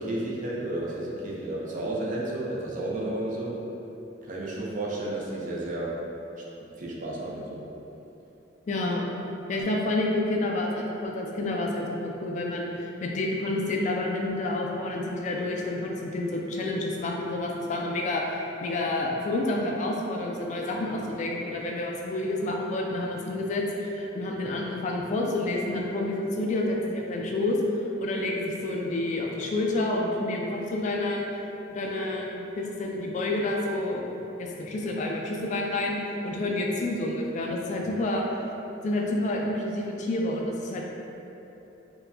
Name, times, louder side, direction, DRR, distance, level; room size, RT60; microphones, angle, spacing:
voice 1, 0.0-3.6 4.2-5.9 6.8-7.6, right 1 dB, 45° right, -4 dB, 0.5 m, -32 dB
voice 2, 8.7-9.0 9.5-27.6 28.0-31.3 31.7-38.2 38.8-40.8, left 2 dB, 40° left, -1 dB, 0.3 m, -29 dB
4.5 x 2.2 x 2.5 m, 3.0 s
head